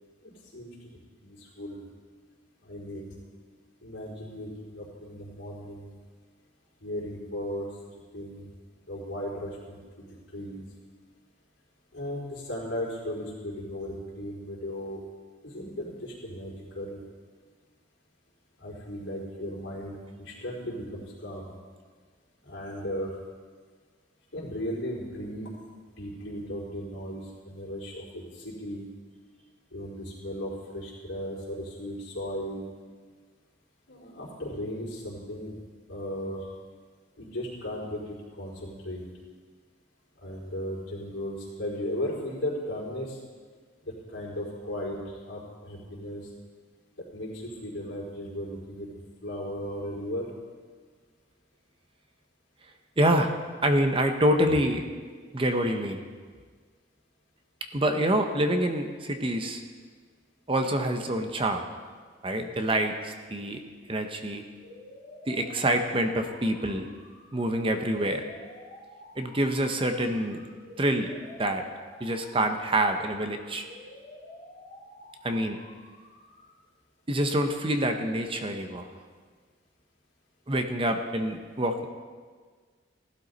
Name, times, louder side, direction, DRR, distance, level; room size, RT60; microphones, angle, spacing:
voice 1, 0.2-1.8 2.6-3.2 3.8-5.9 6.8-7.7 8.1-8.5 8.9-10.6 11.9-15.0 15.4-17.0 18.6-21.5 22.4-23.2 24.3-25.5 26.0-28.8 29.7-32.6 33.9-35.6 35.9-36.5 37.2-39.0 40.2-43.2 43.8-46.3 47.1-48.9 49.2-50.3, equal, 75° left, -5 dB, 4.2 m, -36 dB
voice 2, 53.0-53.3 53.6-54.9 55.3-56.0 57.7-59.6 60.5-61.6 62.2-63.6 63.9-64.4 65.3-66.9 67.3-68.2 69.2-70.5 70.8-71.1 71.4-71.6 72.0-73.7 75.2-75.6 77.1-78.9 80.5-81.9, right 1 dB, 30° right, 6 dB, 0.8 m, -26 dB
sound 1, 64.6-76.6, left 1 dB, 35° left, 2.6 m, -50 dB
15.5 x 12.0 x 4.0 m, 1.6 s
head